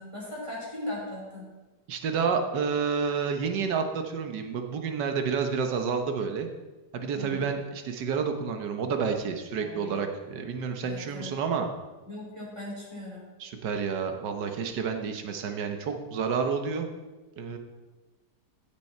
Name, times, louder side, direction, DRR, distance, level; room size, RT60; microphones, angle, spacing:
voice 1, 0.0-1.5 7.1-7.5 9.6-10.1 10.8-11.4 12.1-13.3, left 1 dB, 15° right, -5 dB, 4.0 m, -39 dB
voice 2, 1.9-6.5 6.9-11.7 13.4-16.9 17.4-17.6, right 6 dB, 70° right, 5 dB, 1.7 m, -29 dB
15.5 x 6.9 x 4.5 m, 1.2 s
omnidirectional pair, 1.9 m